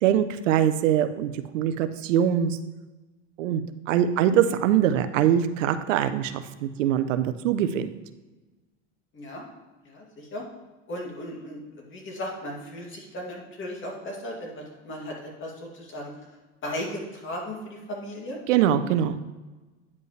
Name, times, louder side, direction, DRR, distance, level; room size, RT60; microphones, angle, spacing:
voice 1, 0.0-2.6 3.4-3.6 3.9-7.9 18.5-19.2, right 10 dB, 90° right, 10 dB, 0.6 m, -23 dB
voice 2, 9.1-9.5 9.8-10.4 10.9-16.1 16.6-18.4, left 1 dB, 35° left, -1 dB, 2.4 m, -36 dB
9.5 x 5.3 x 3.2 m, 1.2 s
supercardioid pair, 105°, 37 cm